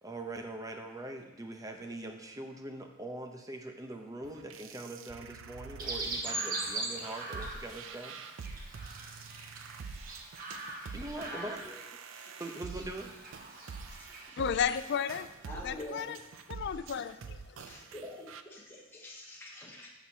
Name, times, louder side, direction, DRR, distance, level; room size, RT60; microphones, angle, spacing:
voice 1, 0.0-8.2 10.9-11.6 12.4-13.1, right 2 dB, 20° right, 3 dB, 0.8 m, -42 dB
sound 1, 4.2-18.4, right 5 dB, 75° right, 0.5 m, -46 dB
Chirp tweet, 5.8-14.3, right 2 dB, 45° right, 1.1 m, -41 dB
voice 2, 10.9-11.8 12.1-12.3 13.6-14.4 15.4-16.2 16.9-17.0 17.6-19.9, left 1 dB, 10° left, -3 dB, 1.0 m, -47 dB
voice 3, 14.4-15.3 15.6-16.2 16.5-17.4, left 7 dB, 60° left, 13 dB, 0.4 m, -33 dB
12.0 x 6.2 x 2.8 m, 1.0 s
head